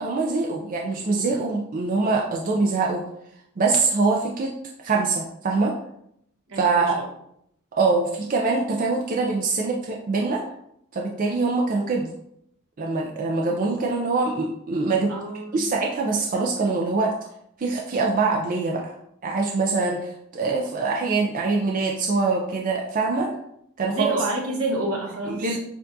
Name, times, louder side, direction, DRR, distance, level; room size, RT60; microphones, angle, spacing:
voice 1, 0.0-3.0 3.6-4.5 4.8-5.7 6.6-7.0 7.7-10.4 10.9-12.1 12.8-15.1 15.5-17.1 17.6-18.9 19.2-23.3 23.8-24.1 25.3-25.6, right 3 dB, 40° right, -1 dB, 0.4 m, -24 dB
voice 2, 6.5-7.1 15.1-15.7 23.9-25.4, right 2 dB, 80° right, -1 dB, 1.2 m, -28 dB
6.6 x 2.4 x 2.7 m, 0.75 s
head